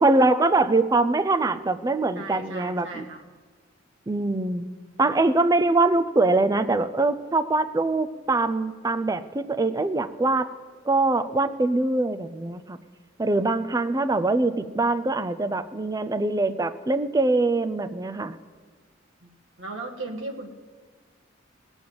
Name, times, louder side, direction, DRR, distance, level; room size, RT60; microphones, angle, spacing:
voice 1, 0.0-3.0 4.1-4.7 5.0-10.5 10.8-12.8 13.2-18.4, right 2 dB, 20° right, 11 dB, 0.5 m, -23 dB
voice 2, 2.1-3.2 19.2-19.3 19.6-20.5, right 2 dB, 80° right, 1 dB, 1.6 m, -36 dB
18.0 x 7.1 x 7.7 m, 1.5 s
head